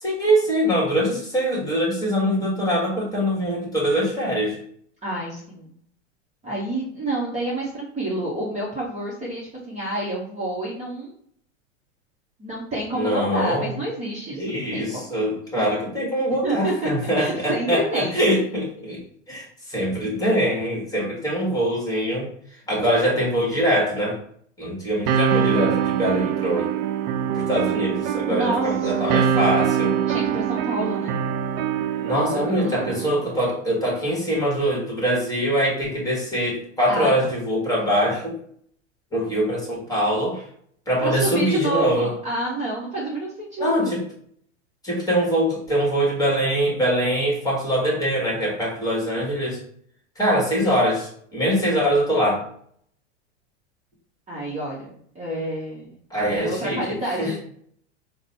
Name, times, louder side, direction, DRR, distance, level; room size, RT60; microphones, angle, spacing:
voice 1, 0.0-4.6 12.9-13.7 14.4-19.0 19.3-24.2 24.6-26.7 27.3-29.9 32.0-38.4 39.1-40.5 40.9-42.1 43.6-44.0 44.8-49.6 50.1-52.4 56.1-57.4, equal, 10° left, -3 dB, 1.5 m, -23 dB
voice 2, 5.0-5.7 6.4-11.1 12.4-15.0 16.4-16.9 17.2-18.2 28.2-29.3 30.1-31.2 32.3-32.9 36.9-37.3 41.0-44.0 54.3-54.9 55.1-55.9 56.3-57.4, right 1 dB, 20° right, -6 dB, 1.1 m, -29 dB
sound 1, 25.1-33.1, right 9 dB, 40° right, 0.4 m, -24 dB
3.8 x 2.2 x 4.1 m, 0.62 s
hypercardioid pair, 115°, 37 cm